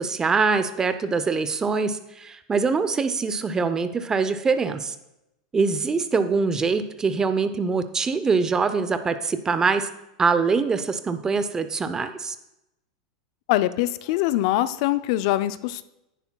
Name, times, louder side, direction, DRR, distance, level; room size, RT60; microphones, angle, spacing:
voice 1, 0.0-4.9 5.5-9.9 10.2-12.4, right 4 dB, 15° right, 11 dB, 0.6 m, -23 dB
voice 2, 13.5-15.8, left 15 dB, 60° left, 13 dB, 0.5 m, -23 dB
10.0 x 9.7 x 2.3 m, 0.90 s
supercardioid pair, 130°, 4 cm